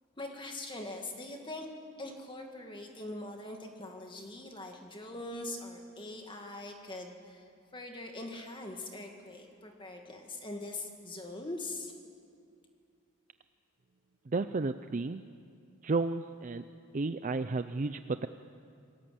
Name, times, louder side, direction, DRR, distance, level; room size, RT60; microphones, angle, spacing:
voice 1, 0.2-1.7 2.0-7.4 7.7-11.9, left 2 dB, 20° left, 3 dB, 2.1 m, -42 dB
voice 2, 14.3-15.2 15.8-16.6 16.9-18.3, right 3 dB, 35° right, 11 dB, 0.5 m, -32 dB
27.5 x 19.0 x 7.8 m, 2.4 s
head